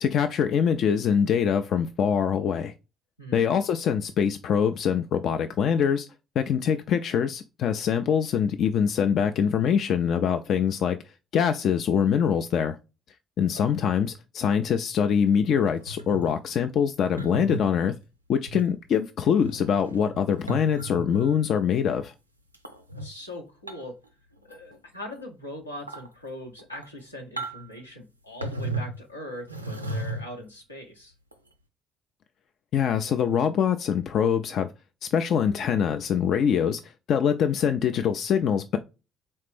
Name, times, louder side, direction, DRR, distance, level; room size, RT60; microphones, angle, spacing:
voice 1, 0.0-2.7 3.3-6.1 6.4-11.0 11.3-12.8 13.4-17.9 18.3-22.1 32.7-34.7 35.0-38.8, left 7 dB, 55° left, 0.3 m, -24 dB
voice 2, 3.2-3.5 13.5-13.7 22.9-24.0 24.4-31.1, left 1 dB, 85° left, 0.8 m, -41 dB
sound 1, 15.6-16.4 17.2-17.6 18.5-18.7 19.3-21.4 22.5-23.1 23.7-24.0 24.3-24.8 25.2-25.3 25.8-26.1 26.6-27.0 27.4-27.8 28.4-29.0 29.5-30.4 31.3-31.5, right 2 dB, 90° right, 0.3 m, -35 dB
4.2 x 3.2 x 3.2 m
figure-of-eight pair, 45°, 0 cm